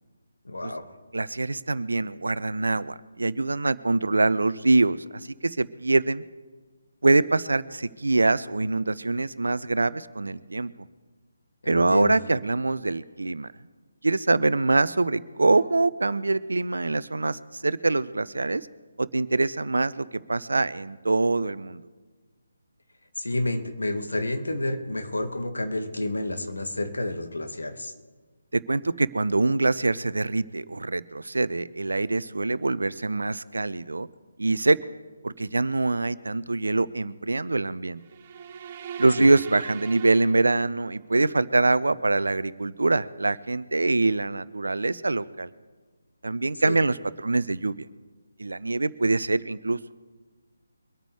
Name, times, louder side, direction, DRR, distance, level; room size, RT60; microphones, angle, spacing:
voice 1, 0.4-0.9 11.6-12.1 23.2-27.9 39.2-39.3 46.6-46.8, left 2 dB, 70° left, 7 dB, 2.0 m, -30 dB
voice 2, 1.1-5.0 5.4-6.2 7.0-10.7 11.7-13.5 14.0-18.7 19.0-21.9 28.5-34.1 34.4-34.8 35.2-38.0 39.0-45.5 46.2-47.9 48.4-49.9, right 2 dB, 65° right, 18 dB, 0.6 m, -24 dB
sound 1, 38.0-41.1, right 7 dB, 30° right, 0.8 m, -40 dB
23.5 x 9.1 x 4.8 m, 1.3 s
figure-of-eight pair, 145°, 0 cm